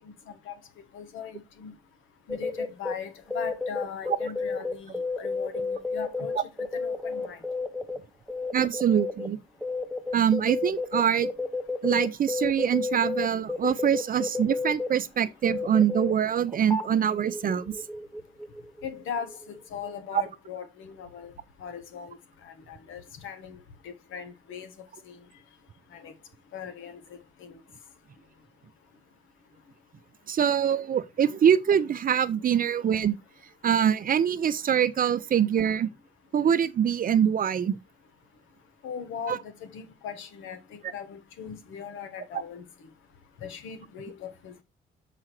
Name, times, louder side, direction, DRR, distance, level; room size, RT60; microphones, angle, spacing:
voice 1, 0.9-1.7 2.3-6.3 6.7-7.4 18.8-21.3 21.6-22.2 22.4-23.6 23.8-24.7 25.0-25.2 25.9-26.1 26.5-27.6 38.8-42.6 43.4-44.6, left 7 dB, 80° left, 1.3 m, -39 dB
sound 1, 2.3-2.9 3.3-8.0 8.3-9.3 9.6-14.9 15.4-16.1 16.5-18.8 19.2-19.6 19.8-19.9, left 3 dB, ahead, 0.9 m, -31 dB
voice 2, 8.5-9.4 10.1-11.3 11.8-17.7 20.1-20.2 30.3-33.2 33.6-35.9 36.3-37.8 39.3-39.4, right 8 dB, 45° right, 0.6 m, -24 dB
6.2 x 4.9 x 4.5 m
cardioid pair, 90°, 20 cm